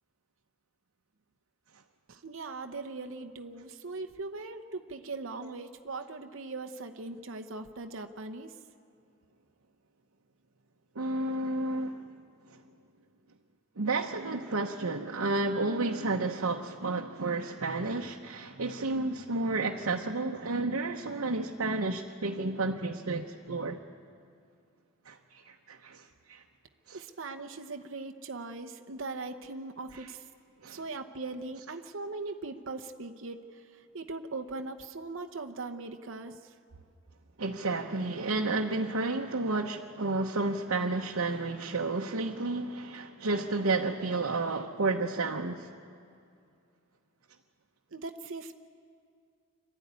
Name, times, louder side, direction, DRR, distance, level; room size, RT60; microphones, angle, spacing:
voice 1, 2.1-8.5 26.9-30.2 30.7-33.4 33.9-36.4 47.9-48.5, right 3 dB, 65° right, 0.9 m, -40 dB
voice 2, 10.9-12.1 12.5-12.6 13.8-23.8 25.0-26.4 26.9-27.0 29.9-30.1 30.6-30.8 37.4-45.7, right 3 dB, 85° right, 1.0 m, -31 dB
25.5 x 13.0 x 9.6 m
head